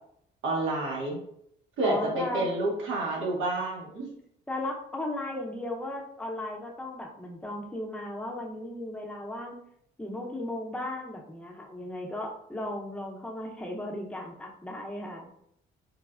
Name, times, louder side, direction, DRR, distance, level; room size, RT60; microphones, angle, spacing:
voice 1, 0.4-1.2 1.8-4.1, right 2 dB, 85° right, -1 dB, 0.9 m, -29 dB
voice 2, 1.8-2.4 4.5-9.5 10.0-15.3, left 1 dB, 5° left, -1 dB, 0.6 m, -36 dB
3.2 x 2.0 x 2.3 m, 0.71 s
cardioid pair, 90°, 20 cm